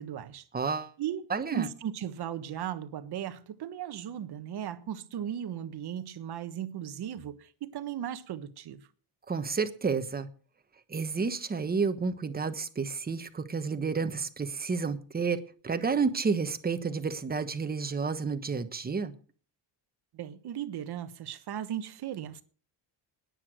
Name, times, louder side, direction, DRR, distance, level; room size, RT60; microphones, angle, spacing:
voice 1, 0.0-0.4 1.0-8.9 20.1-22.4, right 10 dB, 55° right, 1.3 m, -37 dB
voice 2, 0.5-0.9 1.3-1.7 9.3-10.3 10.9-19.1, right 5 dB, 20° right, 1.2 m, -30 dB
12.5 x 10.0 x 6.3 m
cardioid pair, 145°, 46 cm